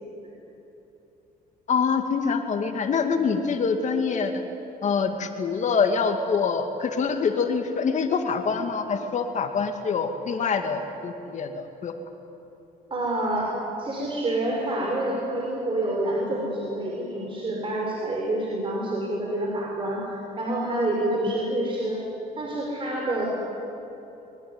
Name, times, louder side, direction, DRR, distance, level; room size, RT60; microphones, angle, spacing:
voice 1, 1.7-4.4 4.8-11.9, left 5 dB, 45° left, 5 dB, 2.2 m, -25 dB
voice 2, 12.9-13.5 13.8-22.0 22.4-23.3, right 1 dB, 30° right, -3 dB, 5.9 m, -27 dB
24.0 x 22.5 x 9.8 m, 3.0 s
cardioid pair, 110°, 17 cm